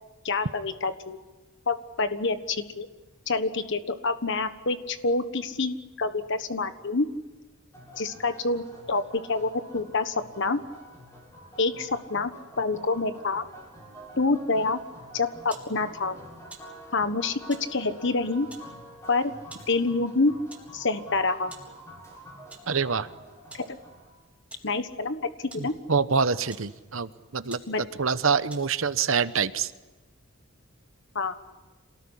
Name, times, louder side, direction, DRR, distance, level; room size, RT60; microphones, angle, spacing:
voice 1, 0.2-1.2 1.7-2.9 3.3-7.1 8.0-10.6 11.6-13.5 14.2-14.8 15.1-16.2 16.9-18.5 19.1-19.3 19.7-20.3 20.7-21.5 23.5-23.8 24.6-25.7 27.7-27.8 31.1-31.3, left 3 dB, 60° left, 10 dB, 1.3 m, -27 dB
sound 1, 7.7-24.1, equal, 15° left, 6.8 m, -48 dB
sound 2, 15.5-15.7 16.5-16.7 17.5-17.7 18.5-18.7 19.5-19.7 20.5-20.7 21.5-21.7 22.5-22.7 23.5-23.7 24.5-24.7 25.5-25.7 26.5-26.7 27.2-27.3 27.5-27.7 28.5-28.8, right 3 dB, 5° right, 4.1 m, -46 dB
voice 2, 22.7-23.1 25.6-27.6 28.0-29.7, right 5 dB, 65° right, 13 dB, 1.0 m, -26 dB
27.5 x 19.0 x 10.0 m, 1.2 s
head